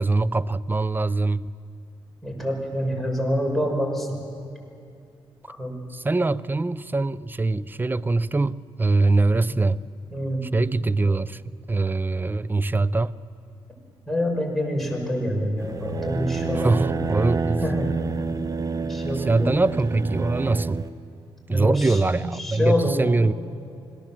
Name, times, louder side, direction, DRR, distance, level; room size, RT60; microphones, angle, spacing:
voice 1, 0.0-1.5 5.9-9.8 10.5-11.4 11.7-13.1 16.6-17.6 19.2-20.8 21.5-23.3, right 3 dB, 20° right, 0.6 m, -23 dB
voice 2, 2.2-4.2 5.5-5.7 9.5-9.6 10.1-10.4 14.1-16.9 17.6-17.9 18.8-19.5 21.5-23.1, equal, ahead, 6.4 m, -26 dB
sound 1, 15.6-20.9, right 4 dB, 35° right, 1.1 m, -28 dB
26.5 x 18.0 x 7.6 m
cardioid pair, 70°, 10 cm